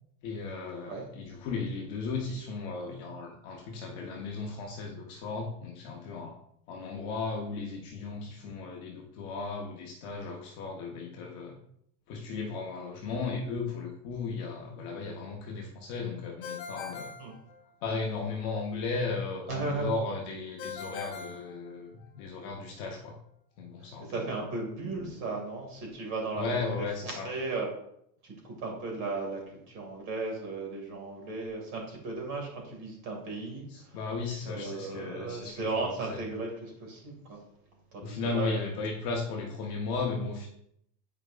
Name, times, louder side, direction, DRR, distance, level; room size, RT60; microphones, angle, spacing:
voice 1, 0.2-6.4 6.7-11.6 12.1-17.1 17.8-23.2 23.6-24.4 26.3-27.3 33.7-36.2 38.0-40.5, left 4 dB, 30° left, 0 dB, 0.5 m, -35 dB
Ringtone, 16.4-18.1 20.6-22.3, left 6 dB, 55° left, 1.4 m, -42 dB
voice 2, 19.5-19.9 24.0-26.9 27.2-27.7 28.2-29.4 29.7-34.0 34.4-37.4 37.9-38.7, right 3 dB, 40° right, 0 dB, 2.2 m, -36 dB
8.5 x 4.9 x 2.4 m, 0.73 s
supercardioid pair, 165°, 50 cm